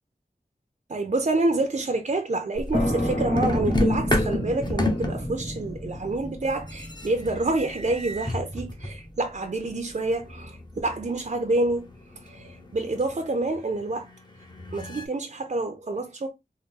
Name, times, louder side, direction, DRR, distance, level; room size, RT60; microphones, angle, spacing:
voice 1, 0.9-11.9 12.2-14.1 14.7-16.3, right 2 dB, 50° right, 0.6 m, -27 dB
sound 1, 2.6-3.1 3.4-6.1 6.6-9.1 10.0-15.1, left 2 dB, 25° left, 0.9 m, -31 dB
sound 2, 2.7-10.1, equal, 45° left, 1.6 m, -31 dB
4.1 x 2.1 x 3.6 m
wide cardioid pair, 65°, 16 cm